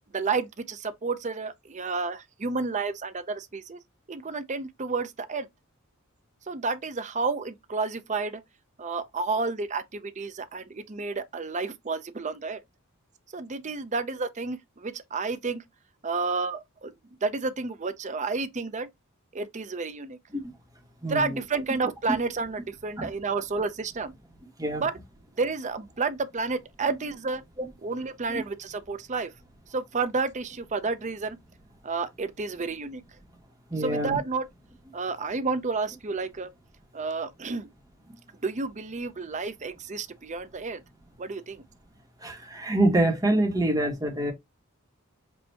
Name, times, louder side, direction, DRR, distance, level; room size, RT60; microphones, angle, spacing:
voice 1, 0.1-3.8 4.1-5.5 6.5-8.4 8.8-12.6 13.3-15.6 16.0-16.9 17.2-18.9 19.3-20.2 21.0-24.1 24.8-25.0 25.4-27.4 27.8-29.3 29.7-31.4 31.8-33.0 33.8-34.4 34.9-36.5 36.9-37.7 38.4-40.8 41.2-41.6, right 4 dB, 35° right, 0.6 m, -30 dB
voice 2, 21.0-21.4 23.0-23.1 24.6-24.8 27.6-27.7 28.3-28.4 33.7-34.2 42.2-44.3, right 1 dB, 15° right, 1.4 m, -25 dB
5.5 x 2.7 x 2.8 m
head